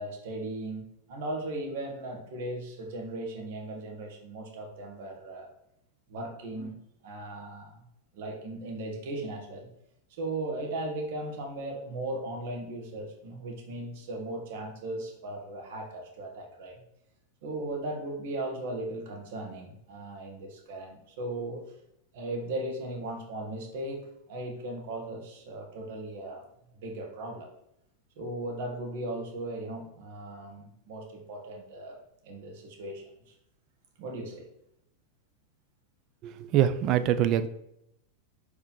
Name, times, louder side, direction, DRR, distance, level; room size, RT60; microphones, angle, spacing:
voice 1, 0.0-5.5 6.1-6.8 7.0-7.8 8.1-9.7 10.1-16.7 17.4-21.7 22.1-26.4 26.8-27.5 28.2-32.0 32.2-33.1 34.0-34.5, right 2 dB, 65° right, 1 dB, 2.0 m, -37 dB
voice 2, 36.2-37.5, right 10 dB, 45° right, 12 dB, 0.6 m, -24 dB
5.1 x 4.0 x 5.6 m, 0.80 s
supercardioid pair, 130°, 0 cm